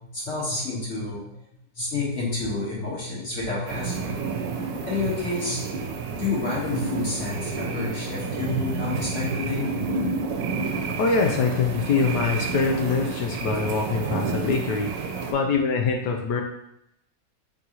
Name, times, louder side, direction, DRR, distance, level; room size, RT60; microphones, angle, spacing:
voice 1, 0.1-1.4 1.7-4.2 4.9-5.8 6.2-9.8 14.4-14.5, left 3 dB, 45° left, -6 dB, 1.6 m, -29 dB
sound 1, 3.7-15.3, right 4 dB, 80° right, 1.2 m, -30 dB
voice 2, 10.9-14.9 15.3-16.4, left 4 dB, 75° left, 2 dB, 1.2 m, -24 dB
3.9 x 3.8 x 2.9 m, 0.80 s
omnidirectional pair, 1.9 m